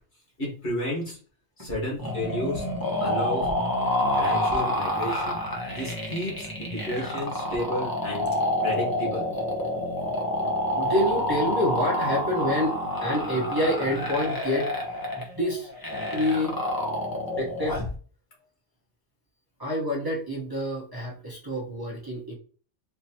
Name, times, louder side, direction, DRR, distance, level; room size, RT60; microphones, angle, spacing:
voice 1, 0.4-1.2 1.6-2.6 3.0-3.5 4.1-5.4 5.7-8.3 8.6-9.3, left 1 dB, 60° left, -4 dB, 2.0 m, -32 dB
sound 1, 2.0-18.0, left 1 dB, 20° left, 0.8 m, -28 dB
voice 2, 10.7-12.8 13.0-14.7 15.2-15.7 16.1-16.6 17.4-17.8 19.6-22.3, left 1 dB, 20° right, -6 dB, 1.1 m, -27 dB
4.4 x 2.9 x 2.9 m, 0.41 s
omnidirectional pair, 1.2 m